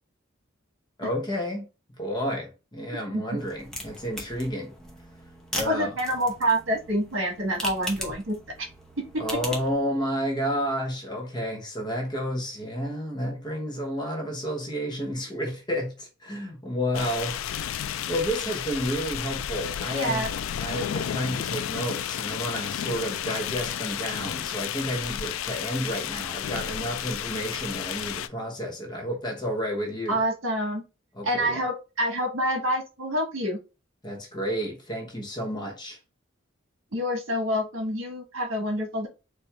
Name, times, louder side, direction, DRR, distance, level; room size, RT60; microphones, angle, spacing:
voice 1, 1.0-1.6 2.0-4.7 5.5-5.9 9.2-17.4 18.1-20.2 20.6-30.2 31.1-31.6 34.0-36.0, equal, 20° left, 1.1 m, -31 dB
sound 1, 3.4-9.8, left 1 dB, 5° left, 0.8 m, -39 dB
voice 2, 5.6-8.7 9.0-9.4 19.9-20.3 30.1-30.8 31.2-33.6 36.9-39.1, equal, 90° right, 1.5 m, -27 dB
sound 2, 16.9-28.3, left 9 dB, 90° left, 0.4 m, -32 dB
4.4 x 2.7 x 3.4 m
head